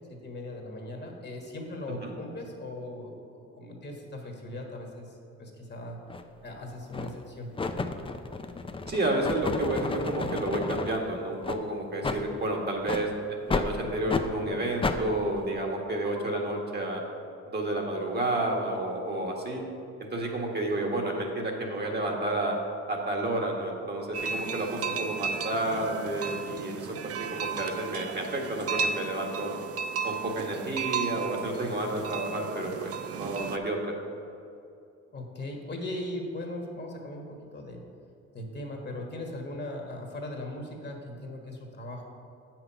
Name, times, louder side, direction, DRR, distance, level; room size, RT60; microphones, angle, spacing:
voice 1, 0.2-6.0 6.4-7.5 35.1-37.8 38.3-42.1, left 1 dB, 35° left, 1 dB, 1.5 m, -39 dB
sound 1, 6.1-6.2 6.9-7.2 7.6-11.0 11.4-11.6 12.0-12.2 12.8-13.0 13.5-13.7 14.1-14.3 14.8-15.0, left 3 dB, 20° left, 0.5 m, -31 dB
voice 2, 8.9-17.0 17.5-19.6 20.0-22.5 22.9-26.9 27.3-29.5 30.0-33.9, right 1 dB, 35° right, 0 dB, 1.5 m, -30 dB
sound 2, 24.1-33.6, right 6 dB, 50° right, 0.6 m, -34 dB
7.8 x 5.9 x 5.7 m, 2.6 s
cardioid pair, 90°, 30 cm